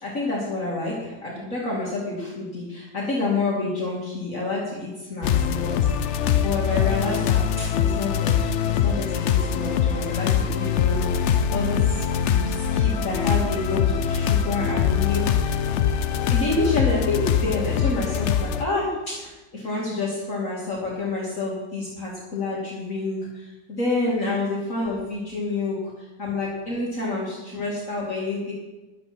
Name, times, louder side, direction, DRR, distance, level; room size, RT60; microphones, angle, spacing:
voice 1, 0.0-6.2 6.4-15.6 16.3-28.5, left 2 dB, 45° left, -5 dB, 2.9 m, -28 dB
sound 1, 5.2-18.6, left 8 dB, 70° left, 0.6 m, -23 dB
14.0 x 11.5 x 4.3 m, 1.1 s
omnidirectional pair, 1.9 m